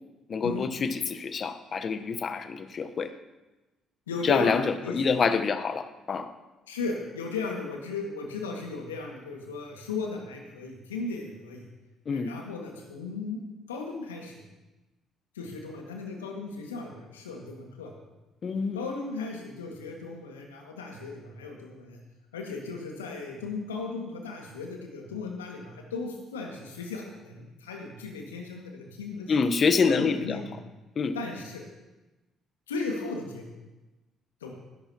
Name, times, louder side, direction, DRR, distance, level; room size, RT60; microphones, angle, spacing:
voice 1, 0.3-3.1 4.2-6.3 12.1-12.3 18.4-18.9 29.3-30.4 31.0-31.2, left 5 dB, 45° left, 10 dB, 1.0 m, -26 dB
voice 2, 4.1-5.0 6.7-11.7 12.1-13.4 13.7-14.4 15.4-17.9 18.7-22.0 22.3-29.3 29.8-30.5 31.1-31.6 32.7-33.5 34.4-34.5, left 3 dB, 85° left, 1 dB, 1.9 m, -36 dB
20.0 x 11.5 x 2.9 m, 1.1 s
hypercardioid pair, 50°, 0 cm